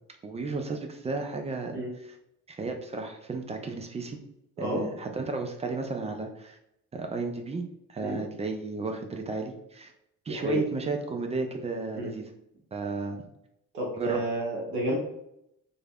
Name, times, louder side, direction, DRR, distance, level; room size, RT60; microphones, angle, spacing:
voice 1, 0.2-1.8 2.5-4.2 4.6-6.6 6.9-7.6 7.9-9.9 10.3-12.3 12.7-13.2 14.0-14.2, right 3 dB, 15° right, 4 dB, 0.3 m, -33 dB
voice 2, 10.3-10.6 11.9-12.1 13.7-15.0, right 1 dB, 90° right, -4 dB, 0.6 m, -30 dB
3.1 x 2.1 x 2.3 m, 0.80 s
figure-of-eight pair, 40°, 45 cm